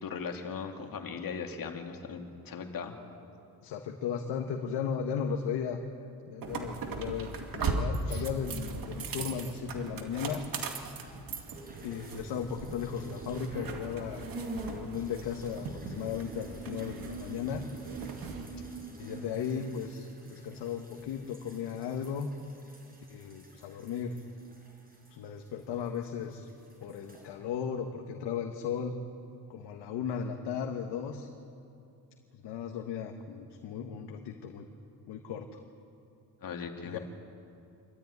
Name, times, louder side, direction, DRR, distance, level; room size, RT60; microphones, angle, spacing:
voice 1, 0.0-2.9 8.1-8.3 36.4-37.0, left 6 dB, 55° left, 3 dB, 2.6 m, -39 dB
voice 2, 3.6-5.8 6.3-10.4 11.8-14.3 14.7-17.6 19.0-22.3 23.1-24.2 25.1-26.5 26.8-28.9 29.5-31.3 32.3-34.7 35.1-35.6 36.8-37.0, left 7 dB, 85° left, 3 dB, 1.6 m, -36 dB
sound 1, 6.4-18.5, right 4 dB, 55° right, 2.5 m, -39 dB
sound 2, 11.0-13.8 14.1-26.0 26.3-27.3, right 3 dB, 20° right, 5.6 m, -46 dB
27.0 x 13.0 x 9.6 m, 2.7 s
cardioid pair, 105°, 40 cm